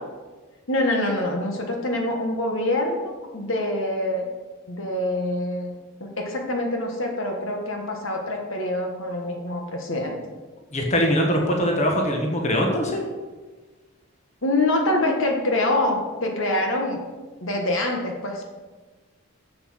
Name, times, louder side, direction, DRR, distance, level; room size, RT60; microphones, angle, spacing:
voice 1, 0.7-4.3 4.7-5.7 6.0-10.2 14.4-17.0 17.4-18.4, left 1 dB, 60° left, 2 dB, 1.5 m, -25 dB
voice 2, 10.7-13.0, equal, 30° left, 1 dB, 1.5 m, -22 dB
7.9 x 7.7 x 6.4 m, 1.3 s
head